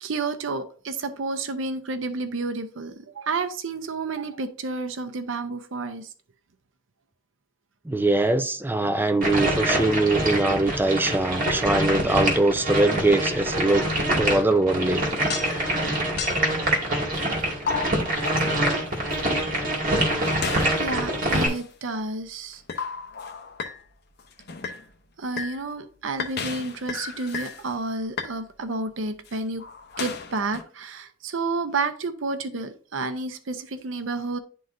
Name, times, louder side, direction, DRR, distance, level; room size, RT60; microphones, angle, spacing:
voice 1, 0.0-6.1 20.2-22.6 25.2-29.6 30.0-34.4, right 3 dB, 80° right, 0.7 m, -30 dB
voice 2, 7.9-13.9 14.2-15.0, right 2 dB, 10° right, 0.5 m, -22 dB
sound 1, 9.2-21.5, right 1 dB, 45° right, 2.1 m, -25 dB
sound 2, 15.0-15.9 16.2-16.6 17.1-19.5 20.2-21.7 22.5-23.8 24.2-24.9 25.4-25.6 26.2-27.7 28.0-28.3 29.1-30.6, left 5 dB, 55° left, 0.8 m, -34 dB
10.5 x 3.9 x 2.6 m
head